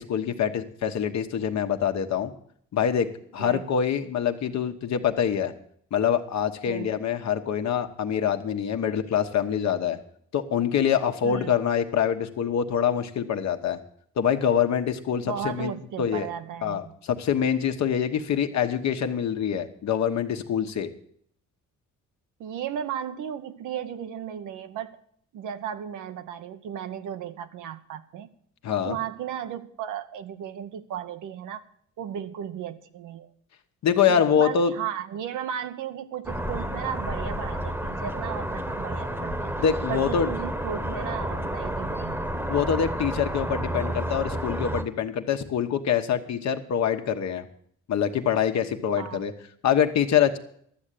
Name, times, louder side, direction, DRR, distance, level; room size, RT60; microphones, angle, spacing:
voice 1, 0.0-2.3 2.7-5.5 5.9-10.0 10.3-13.8 14.2-15.7 16.0-16.3 16.6-20.9 28.6-29.0 33.8-34.7 39.6-40.3 42.5-47.5 47.9-49.3 49.6-50.4, left 8 dB, 65° left, 6 dB, 1.3 m, -25 dB
voice 2, 11.2-11.5 15.3-16.9 22.4-25.0 25.3-28.3 28.8-31.6 32.0-33.3 34.1-39.5 39.9-42.4 49.0-49.2, right 9 dB, 85° right, 10 dB, 1.0 m, -35 dB
sound 1, 36.3-44.8, right 1 dB, 5° right, 1.1 m, -30 dB
12.5 x 7.6 x 8.4 m, 0.63 s
cardioid pair, 90°, 30 cm